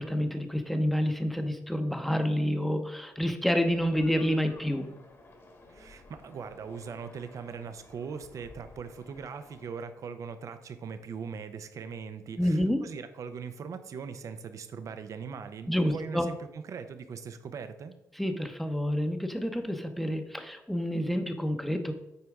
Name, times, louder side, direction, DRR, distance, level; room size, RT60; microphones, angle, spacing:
voice 1, 0.0-4.9 12.4-12.8 15.7-16.3 18.1-21.9, equal, ahead, 7 dB, 0.8 m, -28 dB
sound 1, 3.7-9.7, left 2 dB, 40° left, 1.5 m, -54 dB
voice 2, 5.7-17.9, right 6 dB, 60° right, 10 dB, 0.7 m, -40 dB
8.2 x 4.6 x 3.6 m, 0.89 s
cardioid pair, 80°, 6 cm